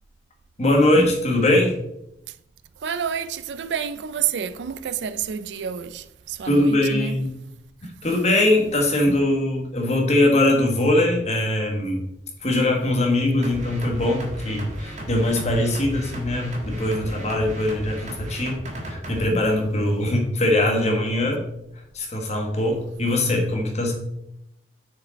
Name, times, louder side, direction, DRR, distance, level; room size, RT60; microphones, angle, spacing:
voice 1, 0.6-1.7 6.4-7.3 7.8-12.0 12.4-18.6 18.9-21.4 21.9-23.9, left 1 dB, 40° left, 1.5 m, -21 dB
voice 2, 2.8-7.2, right 8 dB, 80° right, 0.4 m, -29 dB
sound 1, 13.4-19.3, right 1 dB, 40° right, 1.4 m, -35 dB
6.4 x 4.9 x 4.1 m
head